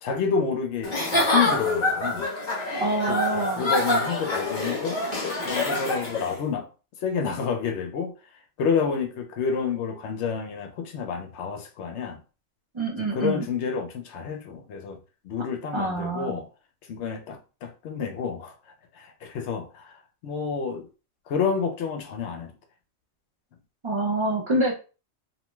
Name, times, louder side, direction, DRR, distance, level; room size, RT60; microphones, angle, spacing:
voice 1, 0.0-2.3 3.1-5.0 5.4-6.7 7.0-8.1 8.6-12.2 13.1-15.0 15.2-16.5 16.9-18.6 18.9-20.9 21.3-22.5, left 6 dB, 70° left, 0.8 m, -29 dB
Giggle / Chuckle chortle, 0.8-6.3, left 2 dB, 40° left, 1.2 m, -26 dB
voice 2, 2.7-3.7 12.7-13.5 15.7-16.4 23.8-24.8, right 2 dB, 35° right, 0.5 m, -26 dB
2.8 x 2.2 x 3.0 m
omnidirectional pair, 1.3 m